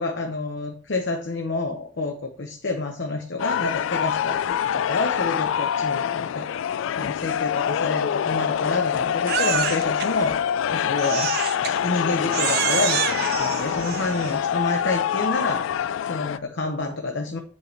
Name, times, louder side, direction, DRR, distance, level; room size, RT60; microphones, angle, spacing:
voice 1, 0.0-10.4 10.7-17.4, left 3 dB, 60° left, 4 dB, 0.8 m, -28 dB
sound 1, 3.4-16.4, left 9 dB, 75° left, 0.3 m, -25 dB
Crying sobbing, 9.3-10.1 11.0-11.8 12.3-14.4, right 9 dB, 55° right, 0.6 m, -27 dB
8.2 x 5.4 x 3.2 m, 0.43 s
head